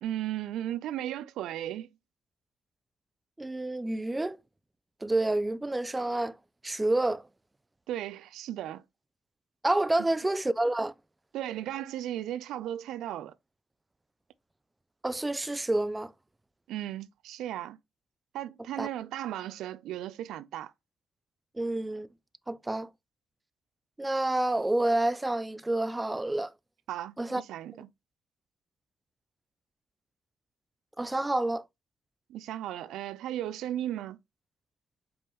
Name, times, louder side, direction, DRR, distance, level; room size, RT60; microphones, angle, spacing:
voice 1, 0.0-1.9 7.9-8.8 11.3-13.3 16.7-17.8 18.3-20.7 26.9-27.9 32.3-34.2, right 12 dB, 85° right, 0.3 m, -36 dB
voice 2, 3.4-4.4 5.0-6.4 6.6-7.2 9.6-10.9 15.0-16.1 18.8-18.9 21.6-22.1 22.5-22.9 24.0-26.5 27.2-27.4 31.0-31.7, right 2 dB, 15° right, 0.4 m, -28 dB
5.1 x 2.8 x 3.6 m
cardioid pair, 90°, 0 cm